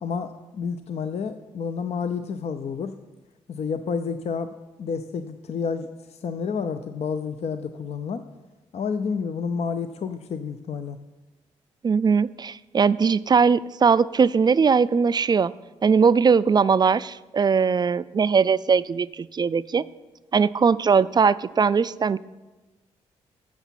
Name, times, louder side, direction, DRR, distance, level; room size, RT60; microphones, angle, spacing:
voice 1, 0.0-2.9 3.5-4.5 4.8-8.3 8.7-11.0, left 5 dB, 50° left, 9 dB, 0.5 m, -30 dB
voice 2, 11.8-15.5 15.8-19.8 20.3-22.2, right 5 dB, 30° right, 17 dB, 0.3 m, -20 dB
7.8 x 7.2 x 5.8 m, 1.1 s
hypercardioid pair, 45°, 14 cm